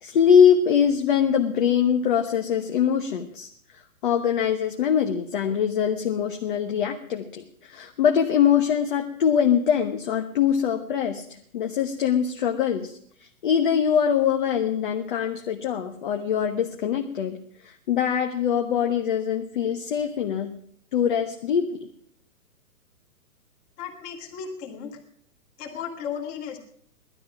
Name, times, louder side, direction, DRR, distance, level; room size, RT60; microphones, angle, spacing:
voice 1, 0.0-3.5 4.0-11.2 11.5-13.0 13.4-17.4 17.6-20.5 20.9-21.9, left 8 dB, 35° left, 4 dB, 1.1 m, -23 dB
voice 2, 23.8-25.0 25.6-26.6, left 7 dB, 20° left, 3 dB, 2.1 m, -35 dB
17.5 x 12.5 x 6.0 m, 0.64 s
hypercardioid pair, 165°, 45 cm